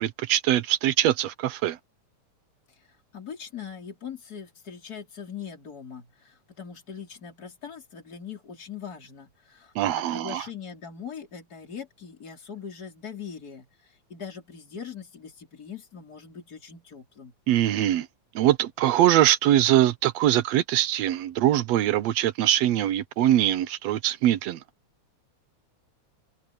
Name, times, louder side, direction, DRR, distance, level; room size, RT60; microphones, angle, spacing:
voice 1, 0.0-1.8 9.8-10.4 17.5-18.1 18.4-24.6, right 12 dB, 70° right, 1.8 m, -22 dB
voice 2, 3.1-17.3, left 7 dB, 30° left, 4.1 m, -41 dB
omnidirectional pair, 3.4 m